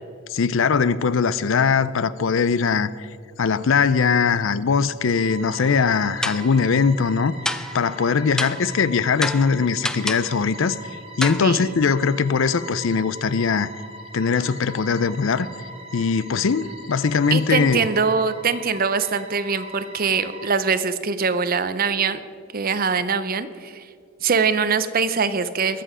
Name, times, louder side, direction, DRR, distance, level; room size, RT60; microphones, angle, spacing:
voice 1, 0.3-3.1 3.4-7.3 7.7-10.8 11.2-13.7 14.1-15.5 15.9-17.9, left 5 dB, 60° left, 0.5 m, -21 dB
sound 1, 5.2-20.5, right 1 dB, 25° right, 1.2 m, -40 dB
sound 2, 5.6-5.9 6.2-6.6 7.5-7.9 8.4-8.7 9.2-10.4 11.2-11.5, left 1 dB, 5° left, 0.3 m, -29 dB
voice 2, 17.3-22.2 22.5-23.9 24.2-25.8, right 5 dB, 40° right, 0.6 m, -23 dB
22.0 x 7.6 x 5.0 m
head